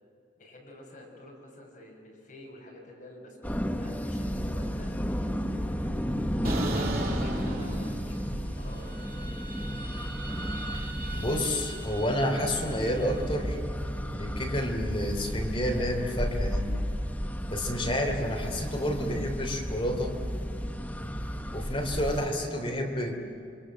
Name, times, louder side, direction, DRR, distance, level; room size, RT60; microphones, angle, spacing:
voice 1, 0.4-5.9 6.5-9.4, left 1 dB, 45° left, -2 dB, 6.8 m, -50 dB
sound 1, 3.4-22.3, equal, 10° left, 1.2 m, -33 dB
sound 2, 6.4-8.4 8.7-13.0, right 1 dB, 50° right, 2.9 m, -37 dB
voice 2, 11.1-13.6 14.1-16.7 17.5-20.2 21.5-23.2, equal, 30° left, 2 dB, 3.2 m, -30 dB
28.0 x 24.0 x 7.6 m, 2.5 s
head